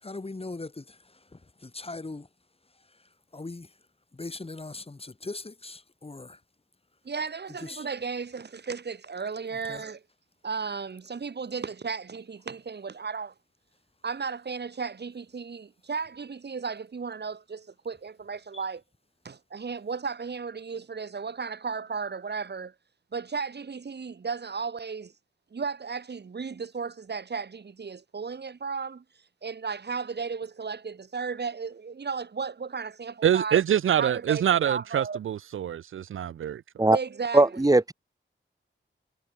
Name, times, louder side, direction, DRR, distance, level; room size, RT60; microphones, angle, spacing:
voice 1, 0.0-2.3 2.7-3.8 4.1-6.4 7.6-7.9 9.5-9.8 18.5-18.6, left 3 dB, 30° left, 1.7 m, -40 dB
voice 2, 7.0-10.0 10.4-13.3 14.0-18.8 19.2-22.7 23.1-25.1 25.5-29.0 29.4-33.6 34.0-35.2 36.9-37.4, right 5 dB, 55° right, 1.3 m, -34 dB
voice 3, 33.2-36.6, right 10 dB, 80° right, 0.4 m, -25 dB
voice 4, 37.3-37.9, right 2 dB, 15° right, 1.2 m, -19 dB
wide cardioid pair, 85°, 21 cm